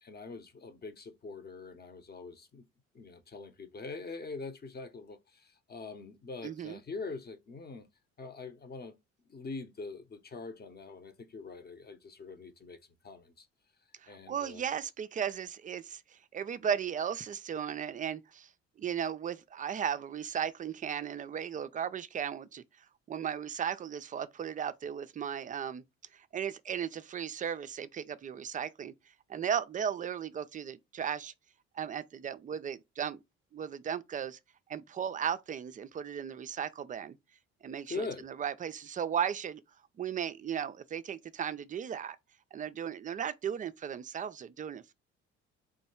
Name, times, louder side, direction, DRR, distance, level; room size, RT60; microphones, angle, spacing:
voice 1, 0.0-2.7 2.9-7.9 8.2-8.9 9.3-12.8 13.0-13.5 14.1-14.7 37.9-38.3, left 4 dB, 25° left, 0.9 m, -43 dB
voice 2, 6.4-6.8 14.0-18.5 18.8-22.6 23.1-25.8 26.1-28.9 29.3-31.3 31.7-33.2 33.5-34.4 34.7-37.2 37.6-39.6 40.0-42.2 42.5-44.9, right 8 dB, 20° right, 0.4 m, -36 dB
3.8 x 3.1 x 4.3 m
figure-of-eight pair, 50°, 39 cm